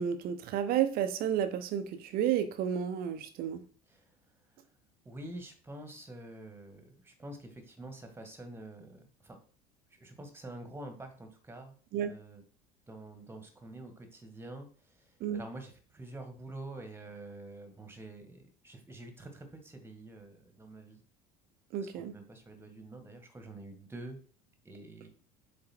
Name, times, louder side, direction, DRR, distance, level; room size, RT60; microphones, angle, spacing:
voice 1, 0.0-3.6 11.9-12.1 15.2-15.4 21.7-22.1, right 9 dB, 50° right, 10 dB, 1.0 m, -31 dB
voice 2, 5.1-9.4 9.9-11.8 12.1-12.4 12.9-14.7 15.0-21.0 22.0-24.2 24.7-25.1, right 2 dB, 10° right, 6 dB, 1.8 m, -47 dB
7.7 x 3.9 x 4.4 m, 0.42 s
figure-of-eight pair, 65°, 20 cm